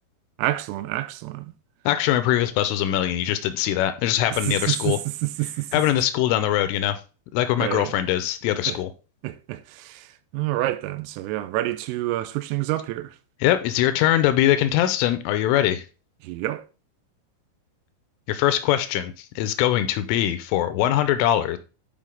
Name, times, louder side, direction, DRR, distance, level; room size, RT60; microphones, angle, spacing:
voice 1, 0.4-1.5 4.3-5.7 7.6-7.9 8.7-8.8 9.2-10.1 10.3-13.1 16.2-16.6, right 16 dB, 90° right, 3.3 m, -28 dB
voice 2, 1.9-5.0 5.7-7.0 7.3-8.9 13.4-15.8 18.3-21.6, left 12 dB, 85° left, 3.1 m, -22 dB
10.5 x 4.8 x 3.6 m
omnidirectional pair, 5.9 m